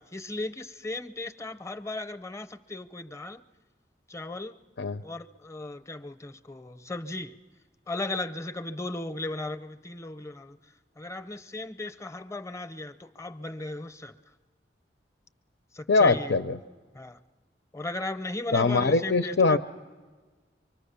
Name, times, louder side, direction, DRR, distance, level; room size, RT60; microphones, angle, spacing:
voice 1, 0.0-3.4 4.1-4.6 5.0-7.4 7.9-10.6 11.0-14.1 15.7-16.4 16.9-17.2 17.7-19.6, left 2 dB, 15° left, 10 dB, 0.7 m, -36 dB
voice 2, 15.9-16.6 18.5-19.6, left 3 dB, 90° left, 9 dB, 0.6 m, -22 dB
25.0 x 24.5 x 6.9 m, 1.4 s
head